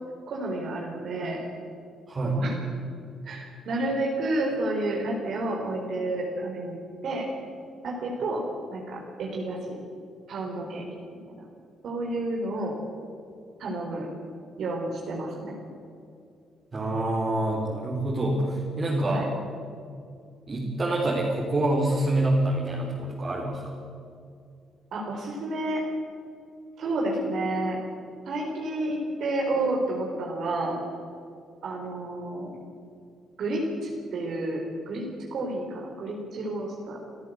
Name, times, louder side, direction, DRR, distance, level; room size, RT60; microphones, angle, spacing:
voice 1, 0.3-1.4 2.2-2.5 3.2-6.8 7.0-7.2 7.8-8.4 8.7-9.8 10.3-10.8 11.3-11.4 11.8-12.7 13.6-14.1 14.6-15.6 19.1-19.2 24.9-25.8 26.8-27.8 28.3-30.8 31.6-32.5 33.4-35.0 35.3-37.0, right 2 dB, 65° right, -1 dB, 4.3 m, -30 dB
voice 2, 16.7-19.3 20.5-23.7, right 1 dB, 35° right, -3 dB, 4.2 m, -26 dB
27.0 x 14.0 x 8.1 m, 2.4 s
cardioid pair, 90°, 0 cm